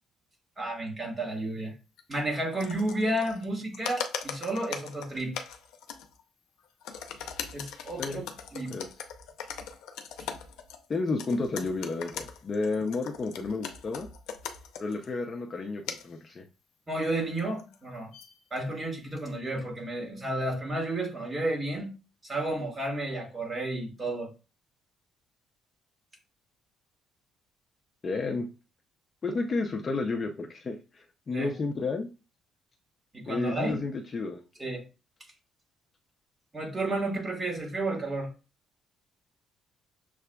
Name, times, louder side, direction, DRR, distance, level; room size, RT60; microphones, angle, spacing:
voice 1, 0.6-1.7 2.1-5.4 7.5-8.2 8.5-8.7 16.9-18.1 18.5-21.9 22.2-24.3 31.3-31.5 33.1-33.8 34.6-34.8 36.5-38.3, right 1 dB, 20° right, 1.4 m, -32 dB
sound 1, 2.0-2.1 2.5-3.5 3.7-6.2 6.6-15.1 15.9-16.1 17.4-18.4, left 7 dB, 85° left, 0.5 m, -40 dB
voice 2, 10.9-14.1 14.8-16.4 28.0-28.5 29.2-32.1 33.3-34.4, left 3 dB, 30° left, 0.5 m, -31 dB
6.6 x 2.3 x 2.2 m
cardioid pair, 130°, 0 cm